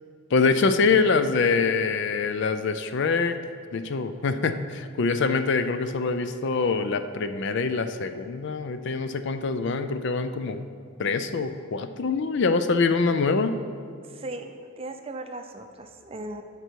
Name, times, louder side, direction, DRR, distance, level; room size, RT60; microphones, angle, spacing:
voice 1, 0.3-3.4 3.7-10.6 11.0-13.5, left 4 dB, 55° left, 10 dB, 0.4 m, -24 dB
voice 2, 14.0-16.4, right 2 dB, 25° right, 6 dB, 0.5 m, -38 dB
11.0 x 6.7 x 4.6 m, 2.2 s
head